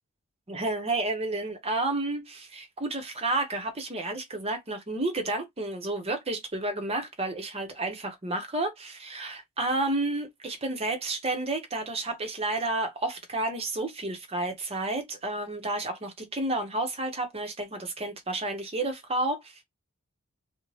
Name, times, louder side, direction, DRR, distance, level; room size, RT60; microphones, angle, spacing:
voice 1, 0.5-19.5, right 2 dB, 25° right, 0.8 m, -31 dB
2.6 x 2.1 x 3.1 m
head